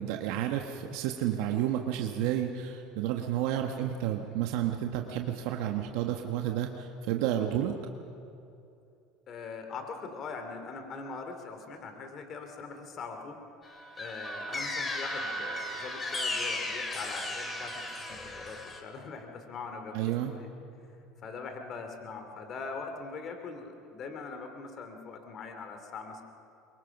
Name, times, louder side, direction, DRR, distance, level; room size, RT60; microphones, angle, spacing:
voice 1, 0.0-7.7 19.9-20.3, right 11 dB, 70° right, 3 dB, 1.3 m, -31 dB
voice 2, 9.3-13.4 14.0-20.5 21.2-26.2, left 4 dB, 45° left, 5 dB, 2.8 m, -42 dB
sound 1, 13.6-18.8, left 1 dB, 20° left, 3.1 m, -35 dB
23.0 x 23.0 x 6.1 m, 2.6 s
supercardioid pair, 105°, 0 cm